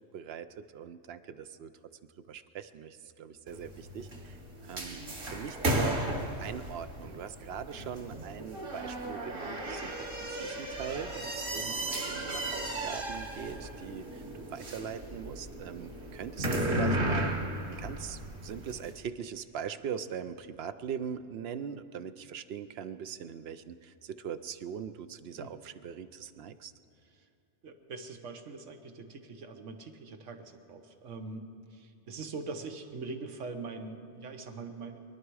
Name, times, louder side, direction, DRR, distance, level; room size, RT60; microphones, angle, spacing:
voice 1, 0.1-1.7 2.3-4.4 4.6-5.0 5.3-6.0 6.4-10.1 10.3-17.3 17.7-26.7, right 7 dB, 65° right, 12 dB, 0.8 m, -41 dB
sound 1, 3.5-18.9, right 1 dB, 50° right, 1.6 m, -35 dB
voice 2, 27.6-31.4 31.7-35.0, right 3 dB, 80° right, 6 dB, 1.4 m, -42 dB
23.0 x 11.5 x 4.8 m, 2.5 s
omnidirectional pair, 1.2 m